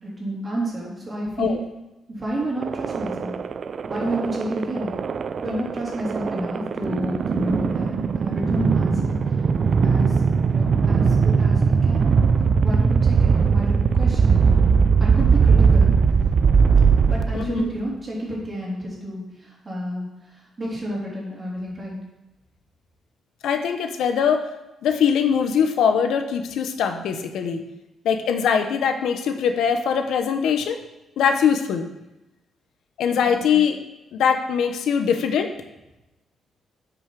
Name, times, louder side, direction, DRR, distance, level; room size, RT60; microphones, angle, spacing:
voice 1, 0.0-1.6 2.1-3.3 3.9-4.9 5.4-9.2 9.6-10.2 10.5-12.1 12.6-14.4 15.0-15.9 17.0-22.0 33.2-33.3, right 1 dB, 25° right, -4 dB, 3.3 m, -30 dB
sound 1, 2.6-17.7, right 5 dB, 45° right, 0.4 m, -19 dB
voice 2, 17.3-17.7 23.4-24.5 24.8-27.6 28.0-30.8 31.2-31.9 33.0-33.8 34.1-35.5, left 7 dB, 85° left, 6 dB, 0.9 m, -22 dB
9.8 x 6.2 x 4.7 m, 0.97 s
cardioid pair, 130°, 0 cm